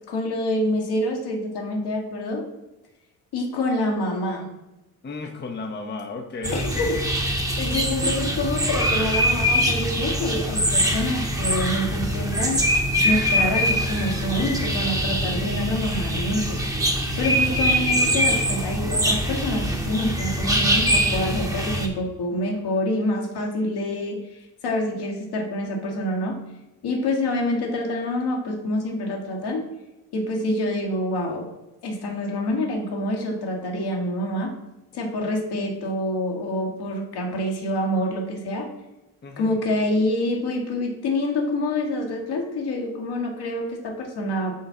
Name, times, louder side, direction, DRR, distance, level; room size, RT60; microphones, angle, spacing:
voice 1, 0.1-2.4 3.3-4.5 6.5-6.9 7.6-12.6 13.0-16.6 17.2-24.2 24.6-26.4 26.8-29.6 30.1-31.5 31.8-34.5 34.9-38.7 39.4-44.5, left 1 dB, 65° left, 1 dB, 1.6 m, -26 dB
voice 2, 5.0-6.9 39.2-39.7, left 3 dB, 25° left, 4 dB, 0.8 m, -34 dB
sound 1, 6.4-21.9, equal, 10° right, 1.1 m, -23 dB
5.6 x 3.4 x 5.6 m, 1.0 s
supercardioid pair, 60°, 42 cm